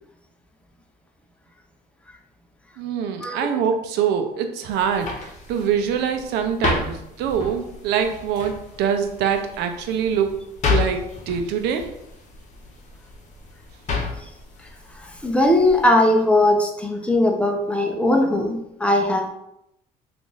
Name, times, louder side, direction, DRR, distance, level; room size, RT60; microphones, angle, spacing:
voice 1, 2.8-10.3 10.7-11.8, right 7 dB, 85° right, 6 dB, 0.5 m, -24 dB
sound 1, 4.7-15.8, left 4 dB, 45° left, 0.9 m, -31 dB
voice 2, 15.2-19.3, left 1 dB, 5° left, 2 dB, 0.5 m, -19 dB
3.0 x 2.5 x 3.8 m, 0.82 s
cardioid pair, 110°, 17 cm